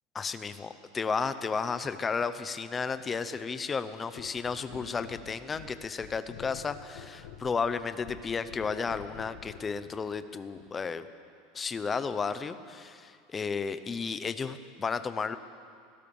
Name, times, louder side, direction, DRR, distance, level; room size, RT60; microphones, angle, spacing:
voice 1, 0.1-11.1 11.5-15.4, left 5 dB, 15° left, 12 dB, 0.7 m, -33 dB
sound 1, 4.1-9.7 10.6-10.7, left 9 dB, 70° left, 1.7 m, -48 dB
24.0 x 16.5 x 7.1 m, 2.3 s
supercardioid pair, 175°, 0 cm